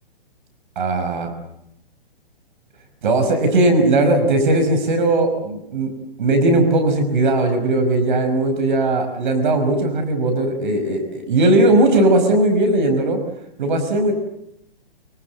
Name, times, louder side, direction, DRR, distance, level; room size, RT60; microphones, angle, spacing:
voice 1, 0.8-1.3 3.0-5.9 6.2-13.2 13.6-14.1, right 2 dB, 55° right, 6 dB, 5.6 m, -18 dB
25.5 x 25.0 x 8.0 m, 0.79 s
figure-of-eight pair, 120°, 29 cm